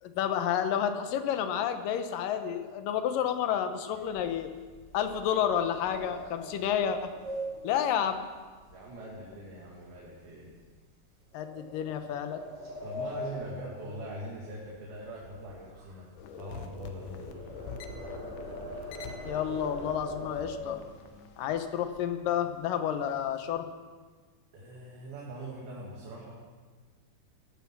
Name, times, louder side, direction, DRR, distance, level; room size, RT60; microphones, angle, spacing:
voice 1, 0.0-4.5 4.9-7.1 7.6-8.3 11.3-12.4 19.3-20.8 21.4-23.7, left 9 dB, 75° left, 8 dB, 2.4 m, -30 dB
sound 1, 3.9-9.3 9.6-9.9 10.4-10.6 11.4-14.7 15.0-21.2 21.8-21.9 22.2-22.5 22.8-23.5, left 1 dB, 65° right, 7.2 m, -42 dB
voice 2, 8.7-10.5 12.8-16.1 16.4-17.5 24.5-26.3, right 1 dB, 80° right, -5 dB, 4.2 m, -42 dB
sound 2, 16.2-21.6, left 5 dB, 90° left, 3.0 m, -45 dB
16.0 x 11.5 x 5.9 m, 1.5 s
omnidirectional pair, 4.3 m